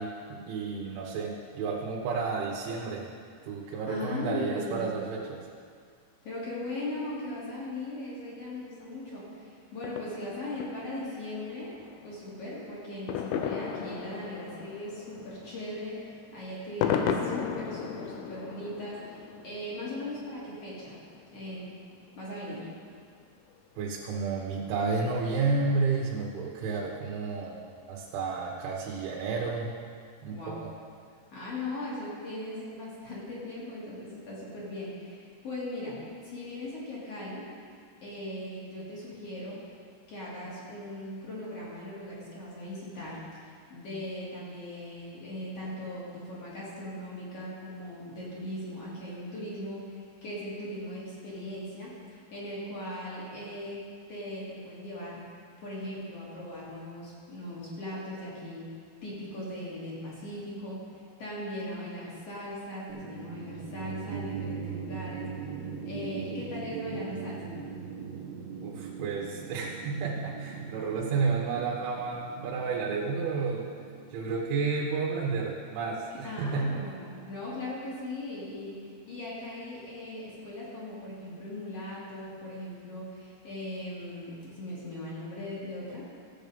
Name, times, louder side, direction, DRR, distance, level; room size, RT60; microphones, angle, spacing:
voice 1, 0.0-3.1 3.5-5.5 23.8-29.7 30.2-30.7 68.6-73.7 74.1-76.8, right 4 dB, 85° right, -3 dB, 3.5 m, -31 dB
voice 2, 3.9-5.0 6.2-11.7 12.0-21.0 21.3-21.7 22.2-22.7 30.3-30.6 31.3-37.4 38.0-39.6 40.1-43.2 43.7-51.9 52.3-53.8 54.1-55.2 55.6-58.7 59.0-60.8 61.2-65.3 65.9-67.5 76.2-86.1, left 1 dB, 35° left, -7 dB, 3.5 m, -39 dB
sound 1, 9.8-22.5 22.9-23.0 23.2-23.3 23.5-23.6 24.0-24.1 25.0-25.1 25.5-25.6 26.9-27.3 27.6-27.7 28.1-28.2 28.5-28.6, left 7 dB, 80° left, 2.4 m, -36 dB
sound 2, 62.9-75.0, right 6 dB, 65° right, 2.6 m, -41 dB
15.5 x 8.2 x 5.2 m, 2.1 s
omnidirectional pair, 5.3 m